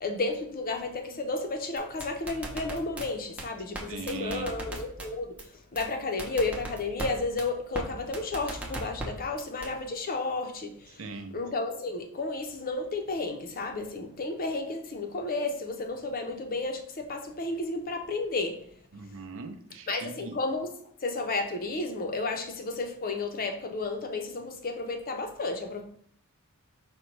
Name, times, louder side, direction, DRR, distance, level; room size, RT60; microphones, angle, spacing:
voice 1, 0.0-5.4 5.7-11.1 11.3-18.6 19.9-20.7 21.0-25.8, left 3 dB, 40° left, 5 dB, 0.6 m, -32 dB
sound 1, 1.8-3.1 3.4-3.5 3.7-3.8 4.1-5.1 5.4-5.5 5.8-5.9 6.2-7.1 7.4-7.5 7.7-7.8 8.1-9.1 9.4-9.7, right 1 dB, 5° right, 0.7 m, -36 dB
voice 2, 3.9-4.5 11.0-11.3 18.9-20.3, right 4 dB, 65° right, 6 dB, 0.5 m, -39 dB
5.1 x 2.2 x 4.4 m, 0.63 s
head